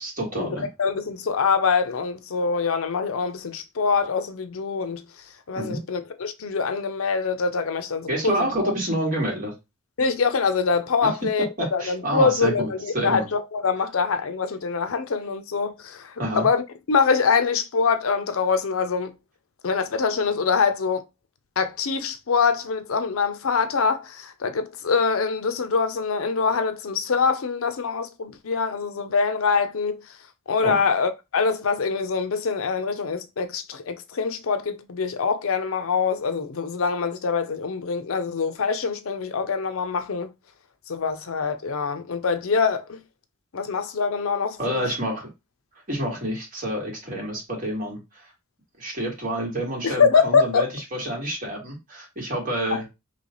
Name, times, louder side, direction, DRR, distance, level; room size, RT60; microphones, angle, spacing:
voice 1, 0.0-0.7 5.6-5.8 8.1-9.5 11.0-11.1 11.6-12.7 12.9-13.3 16.2-16.5 30.6-30.8 44.6-45.3 45.9-48.3 48.8-52.9, right 1 dB, 40° right, 1.8 m, -28 dB
voice 2, 0.8-5.0 5.5-8.7 10.0-11.5 11.7-19.1 19.6-21.0 21.6-30.0 30.5-40.3 40.9-43.0 43.5-44.8 49.8-50.6, left 5 dB, 80° left, 0.6 m, -24 dB
3.3 x 3.0 x 3.9 m
head